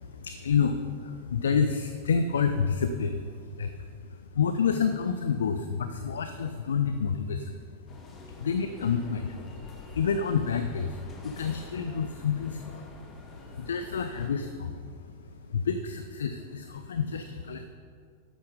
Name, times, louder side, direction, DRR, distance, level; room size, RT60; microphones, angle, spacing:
voice 1, 0.0-17.7, left 6 dB, 65° left, 9 dB, 0.5 m, -29 dB
sound 1, 7.9-14.3, left 2 dB, 25° left, 1.5 m, -48 dB
13.0 x 9.9 x 3.8 m, 2.3 s
figure-of-eight pair, 90°, 0 cm